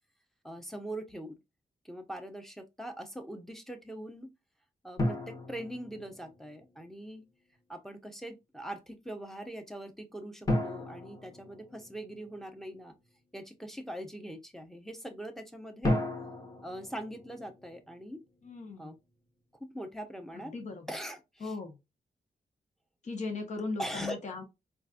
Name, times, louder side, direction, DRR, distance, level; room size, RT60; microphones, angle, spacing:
voice 1, 0.4-1.4 1.8-4.3 4.8-7.2 7.7-12.9 13.3-16.0 16.6-18.2 18.8-18.9 19.6-20.5 20.9-21.5 23.8-24.2, right 1 dB, ahead, 0.8 m, -42 dB
sound 1, 5.0-6.6 10.5-12.4 15.8-18.1, left 1 dB, 20° left, 1.1 m, -34 dB
voice 2, 18.4-19.0 20.3-20.9 21.4-21.8 23.0-24.4, left 3 dB, 45° left, 0.9 m, -38 dB
4.0 x 2.5 x 2.4 m
cardioid pair, 70°, 16 cm